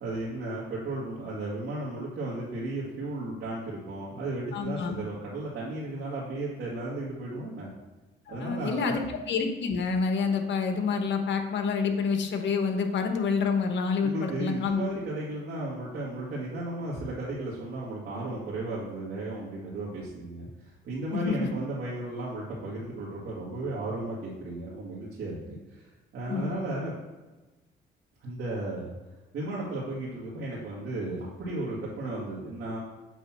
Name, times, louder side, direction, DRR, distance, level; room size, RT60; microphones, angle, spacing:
voice 1, 0.0-7.7 8.3-9.0 14.0-25.9 26.1-26.9 28.2-29.0 29.3-32.8, right 2 dB, 75° right, -7 dB, 2.1 m, -34 dB
voice 2, 4.5-4.9 8.3-9.0 9.3-14.8 21.1-21.3 26.3-26.5, left 5 dB, 65° left, 5 dB, 1.1 m, -28 dB
8.1 x 3.0 x 6.1 m, 1.2 s
cardioid pair, 90°, 20 cm